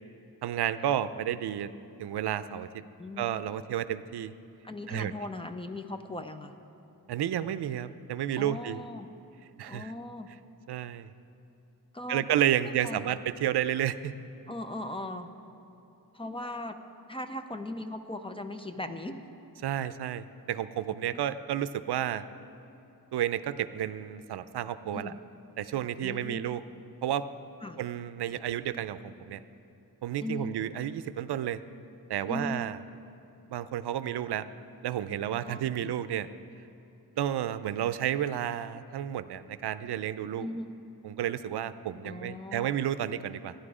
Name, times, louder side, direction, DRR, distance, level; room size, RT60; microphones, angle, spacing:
voice 1, 0.4-1.7 2.0-2.8 3.2-4.3 4.9-5.1 7.1-8.8 9.6-9.9 10.7-11.1 12.1-14.1 19.6-22.2 23.1-25.1 25.6-26.6 27.0-27.2 27.8-29.4 30.0-31.6 32.1-32.8 33.5-34.5 34.8-36.3 37.2-40.5 41.0-43.5, right 11 dB, 85° right, 13 dB, 0.5 m, -31 dB
voice 2, 3.0-3.4 4.6-6.5 8.3-9.1 9.7-10.3 11.9-12.3 12.8-13.1 14.5-15.3 16.1-16.8 17.1-19.2 21.1-21.2 24.9-25.2 26.0-26.5 27.6-27.8 30.2-30.5 32.3-32.6 35.4-35.9 40.4-40.8 42.0-42.8, left 1 dB, 15° left, 8 dB, 0.5 m, -38 dB
13.5 x 10.0 x 4.9 m, 3.0 s
wide cardioid pair, 135°, 38 cm